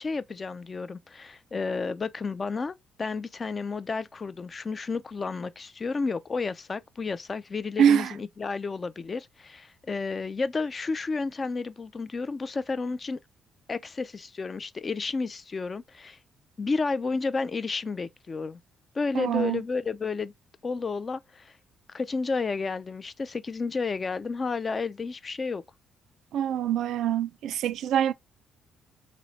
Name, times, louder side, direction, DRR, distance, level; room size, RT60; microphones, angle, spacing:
voice 1, 0.0-13.2 13.7-16.2 16.6-18.6 18.9-20.3 20.6-21.5 21.9-25.6, left 4 dB, 35° left, 0.3 m, -31 dB
voice 2, 7.8-8.1 19.1-19.6 26.3-28.1, right 9 dB, 75° right, 0.3 m, -24 dB
3.0 x 2.0 x 4.0 m
cardioid pair, 90°, 0 cm